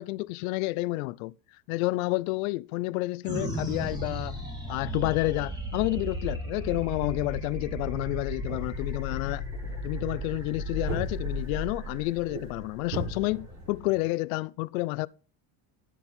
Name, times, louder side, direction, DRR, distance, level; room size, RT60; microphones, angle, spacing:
voice 1, 0.0-1.3 1.7-4.4 4.7-9.4 9.8-15.1, left 21 dB, 90° left, 0.5 m, -30 dB
sound 1, 3.2-13.9, left 1 dB, 10° right, 1.9 m, -35 dB
sound 2, 8.5-14.1, right 2 dB, 55° right, 5.8 m, -40 dB
11.5 x 4.5 x 5.3 m
cardioid pair, 140°, 40 cm